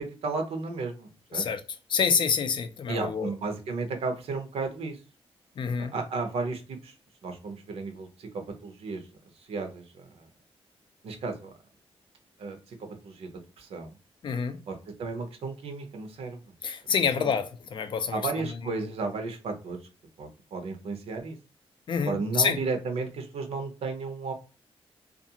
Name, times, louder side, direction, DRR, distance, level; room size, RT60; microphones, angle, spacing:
voice 1, 0.0-1.4 2.9-5.0 5.8-6.9 7.2-9.0 9.5-10.2 11.0-11.5 12.4-13.3 13.6-14.0 14.7-16.4 17.2-17.3 18.1-19.8 20.2-21.4 22.0-24.3, right 4 dB, 80° right, 0.7 m, -34 dB
voice 2, 1.9-3.3 5.6-5.9 14.2-14.6 16.6-18.2 21.9-22.6, left 6 dB, 50° left, 0.4 m, -27 dB
2.5 x 2.3 x 2.8 m
wide cardioid pair, 145°, 10 cm